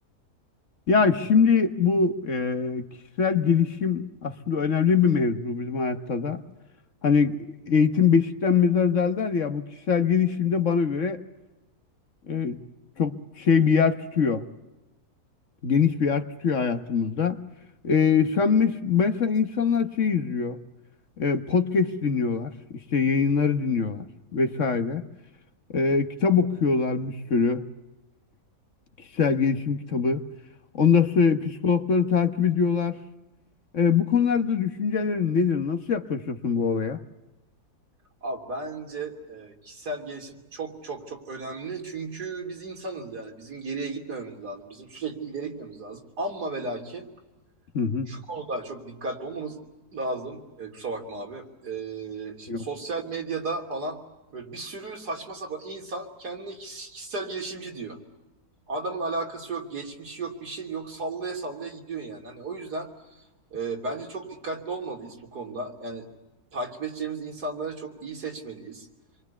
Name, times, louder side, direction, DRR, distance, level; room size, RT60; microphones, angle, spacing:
voice 1, 0.9-2.9 3.2-6.4 7.0-7.4 7.7-11.2 12.3-12.6 13.0-14.4 15.6-17.4 17.8-20.6 21.2-22.5 22.9-24.0 24.3-25.0 25.7-27.6 29.2-30.2 30.7-33.0 33.7-37.0 47.7-48.1 52.5-52.6, left 6 dB, 55° left, 1.5 m, -23 dB
voice 2, 38.2-47.1 48.1-49.6 49.9-54.0 54.3-58.0 58.7-62.9 63.5-66.1 66.5-68.9, right 3 dB, 90° right, 3.8 m, -34 dB
27.5 x 23.5 x 8.3 m
omnidirectional pair, 1.7 m